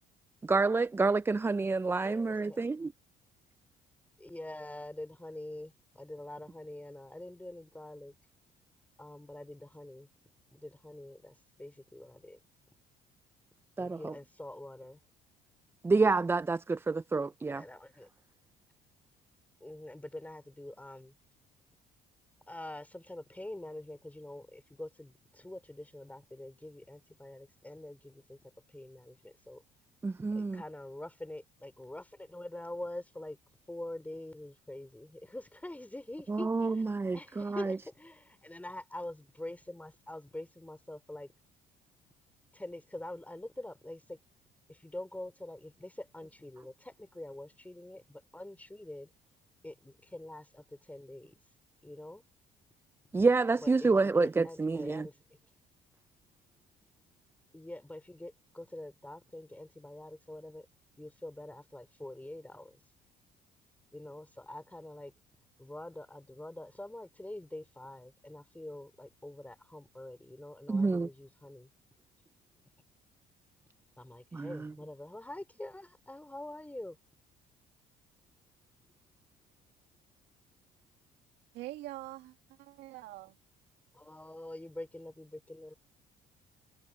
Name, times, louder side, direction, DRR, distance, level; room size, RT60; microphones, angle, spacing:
voice 1, 0.4-2.9 13.8-14.1 15.8-17.6 30.0-30.6 36.3-37.8 53.1-55.1 70.7-71.1 74.3-74.7, right 3 dB, 15° right, 0.3 m, -28 dB
voice 2, 2.0-2.6 4.2-8.1 9.0-10.1 10.5-12.4 13.8-15.0 17.5-18.1 19.6-21.1 22.5-28.4 28.7-29.6 30.4-33.4 33.7-41.3 42.5-44.2 44.7-49.1 49.6-51.3 51.8-52.2 53.6-55.1 57.5-60.7 61.0-62.8 63.9-65.1 65.6-71.7 74.0-77.0 83.9-85.7, left 1 dB, 10° left, 5.2 m, -45 dB
voice 3, 81.5-83.4, right 17 dB, 80° right, 2.1 m, -44 dB
supercardioid pair, 85°, 18 cm